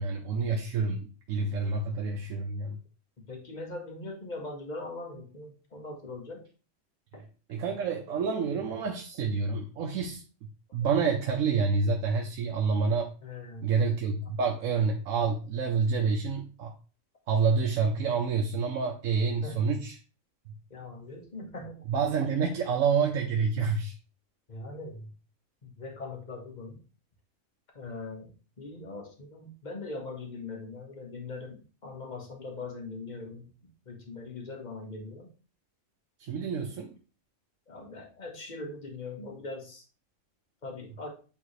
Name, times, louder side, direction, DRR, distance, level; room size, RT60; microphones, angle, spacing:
voice 1, 0.0-2.8 7.5-10.2 10.7-13.1 13.6-16.7 17.3-19.9 21.9-23.9 36.2-37.0, right 5 dB, 85° right, 3 dB, 1.1 m, -28 dB
voice 2, 3.3-6.4 7.1-7.2 8.1-8.4 13.2-13.8 19.4-19.6 20.7-21.8 24.5-25.1 25.6-26.8 27.7-35.3 37.7-39.8 40.6-41.1, left 3 dB, 35° left, 2 dB, 1.4 m, -41 dB
8.7 x 3.5 x 3.1 m, 0.35 s
omnidirectional pair, 1.3 m